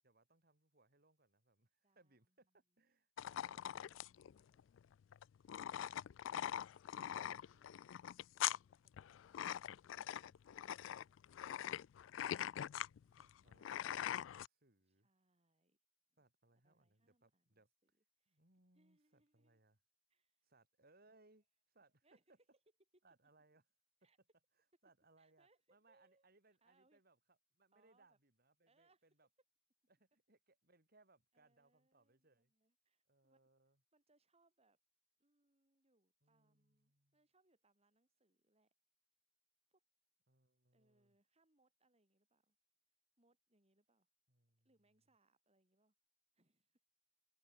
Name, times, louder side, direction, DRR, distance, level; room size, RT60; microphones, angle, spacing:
voice 1, 0.0-4.0 13.2-15.1 16.2-17.7 18.3-19.8 20.4-21.4 21.7-22.1 23.0-23.6 24.8-29.3 29.9-32.5 33.1-33.8 36.2-37.2 40.3-41.2 44.3-44.7, right 2 dB, 55° right, 5.2 m, -73 dB
voice 2, 1.8-2.6 3.5-4.0 4.2-4.8 6.5-6.7 6.9-9.8 10.1-11.9 12.6-13.4 14.8-15.8 16.1-16.2 16.6-18.4 18.7-19.6 20.1-20.4 21.0-21.4 22.0-22.3 24.0-24.2 25.2-27.0 27.7-28.2 28.7-29.1 31.3-33.4 33.9-34.8 35.2-38.7 39.7-39.8 40.7-42.6 43.2-44.1 44.6-45.9 46.3-46.8, right 2 dB, 35° right, 6.8 m, -79 dB
sound 1, 3.2-14.5, left 10 dB, 85° left, 0.3 m, -43 dB
head